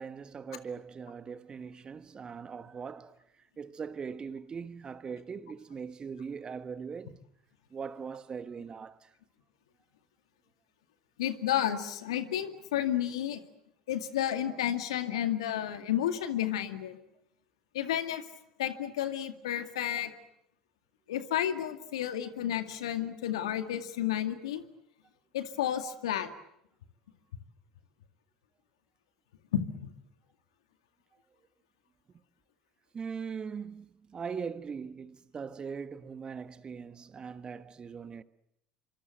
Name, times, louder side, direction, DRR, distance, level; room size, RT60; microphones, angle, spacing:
voice 1, 0.0-7.2 7.7-9.1 32.9-38.2, right 6 dB, 30° right, 1.4 m, -41 dB
voice 2, 11.2-13.4 13.9-17.0 17.7-18.2 18.6-20.1 21.1-24.6 25.3-26.3 29.5-29.9, left 11 dB, 75° left, 2.1 m, -31 dB
26.0 x 25.0 x 8.0 m
hypercardioid pair, 70°, 3 cm